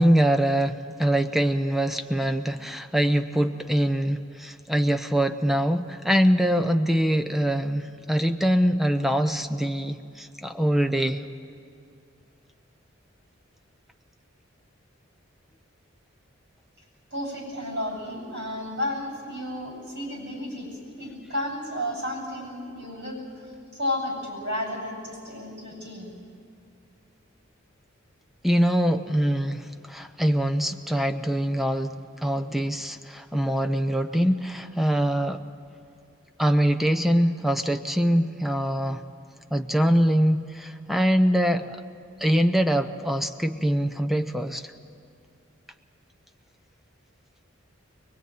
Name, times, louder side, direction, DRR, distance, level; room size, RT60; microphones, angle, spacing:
voice 1, 0.0-11.2 28.4-35.4 36.4-39.0 39.5-41.8 42.2-44.7, equal, ahead, 8 dB, 0.7 m, -23 dB
voice 2, 17.1-26.1, left 1 dB, 55° right, 0 dB, 7.8 m, -32 dB
22.5 x 22.0 x 9.4 m, 2.4 s
head